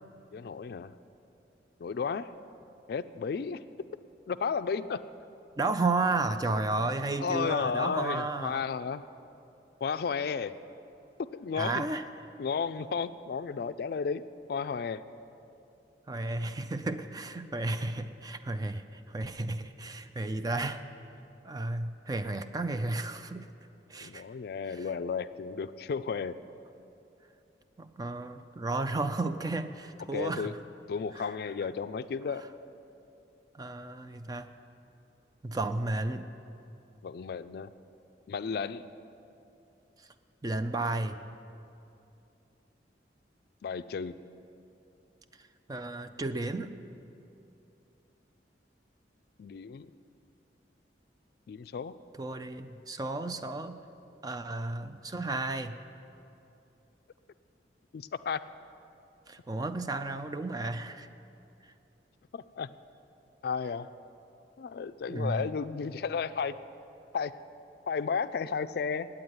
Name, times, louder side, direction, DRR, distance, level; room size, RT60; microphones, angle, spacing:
voice 1, 0.3-1.0 1.8-2.3 2.9-3.6 4.3-5.0 7.2-9.0 9.8-10.5 11.3-11.9 12.4-15.0 24.0-26.4 30.1-30.5 30.9-32.4 37.0-37.7 38.3-38.9 43.6-44.1 49.4-49.9 51.5-51.9 57.9-58.4 62.3-62.7 63.4-63.9 64.6-66.6 67.1-67.3 67.9-69.1, left 5 dB, 60° left, 12 dB, 0.3 m, -33 dB
voice 2, 5.6-8.6 11.5-12.0 16.1-20.8 21.4-23.5 23.9-24.2 24.8-24.9 27.8-30.5 31.2-31.3 33.6-34.5 35.4-36.3 40.4-41.2 45.7-46.7 52.2-53.8 54.2-55.7 59.3-61.1 65.1-65.5, right 2 dB, 20° right, 9 dB, 0.4 m, -33 dB
9.0 x 8.7 x 9.5 m, 2.8 s
head